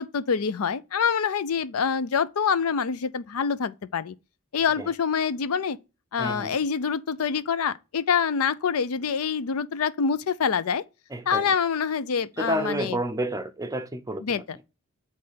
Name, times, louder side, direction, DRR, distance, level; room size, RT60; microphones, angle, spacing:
voice 1, 0.0-4.1 4.5-5.8 6.1-10.8 11.3-13.0 14.2-14.6, left 6 dB, 85° left, 0.5 m, -26 dB
voice 2, 6.2-6.6 11.1-11.4 12.4-14.2, right 1 dB, 15° right, 0.7 m, -30 dB
8.6 x 3.3 x 5.7 m
head